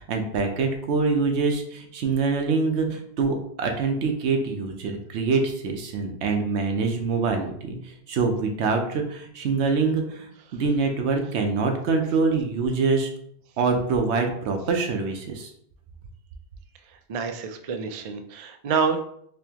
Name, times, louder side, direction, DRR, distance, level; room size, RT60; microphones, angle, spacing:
voice 1, 0.0-13.1 13.6-15.5, right 4 dB, 90° right, 3 dB, 1.0 m, -25 dB
voice 2, 16.9-19.0, right 5 dB, 60° right, 6 dB, 0.3 m, -28 dB
4.2 x 2.9 x 2.8 m, 0.67 s
omnidirectional pair, 1.1 m